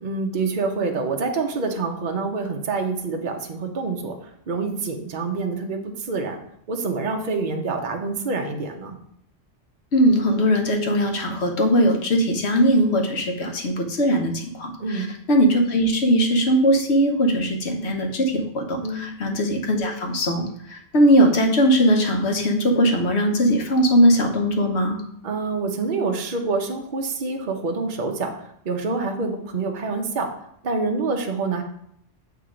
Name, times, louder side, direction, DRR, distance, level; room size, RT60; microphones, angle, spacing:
voice 1, 0.0-6.4 6.7-9.0 14.8-15.1 18.8-19.1 25.2-30.3 30.6-31.6, right 4 dB, 45° right, 3 dB, 0.9 m, -27 dB
voice 2, 9.9-25.0, equal, 70° left, 3 dB, 1.2 m, -20 dB
8.2 x 2.9 x 5.0 m, 0.70 s
omnidirectional pair, 1.2 m